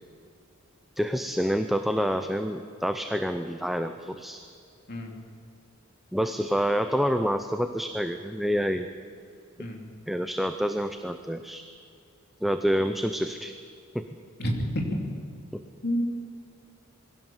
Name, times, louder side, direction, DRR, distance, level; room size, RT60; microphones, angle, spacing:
voice 1, 1.0-4.4 6.1-8.9 10.1-11.6 12.4-13.5 13.9-14.0, equal, ahead, 7 dB, 0.6 m, -27 dB
voice 2, 14.4-14.8 15.8-16.0, equal, 50° left, 1 dB, 3.0 m, -29 dB
22.0 x 16.0 x 7.3 m, 2.4 s
head